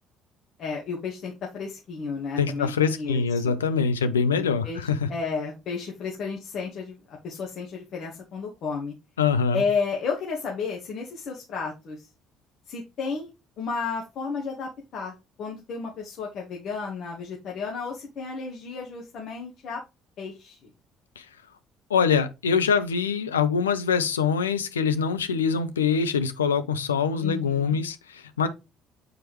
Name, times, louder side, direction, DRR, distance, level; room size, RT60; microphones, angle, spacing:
voice 1, 0.6-3.5 4.6-7.0 7.2-8.9 9.5-12.1 12.7-13.3 13.6-19.8 20.2-20.7 27.2-27.8, left 5 dB, 55° left, 1.6 m, -32 dB
voice 2, 2.4-5.1 9.2-9.6 21.2-21.3 21.9-28.5, left 6 dB, 85° left, 0.6 m, -24 dB
7.3 x 4.5 x 3.0 m
figure-of-eight pair, 50°, 0 cm